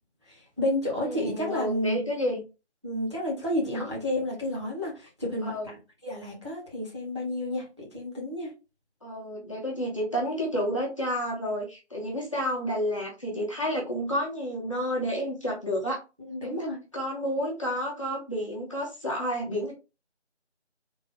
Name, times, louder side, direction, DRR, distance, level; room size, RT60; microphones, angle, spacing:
voice 1, 0.3-2.1 2.8-8.5 16.2-16.8, left 1 dB, 25° right, -3 dB, 0.8 m, -31 dB
voice 2, 1.0-2.4 3.6-3.9 5.4-5.7 9.0-16.0 16.4-19.7, equal, 25° left, -3 dB, 1.1 m, -30 dB
3.5 x 2.7 x 3.5 m, 0.29 s
figure-of-eight pair, 170°, 35 cm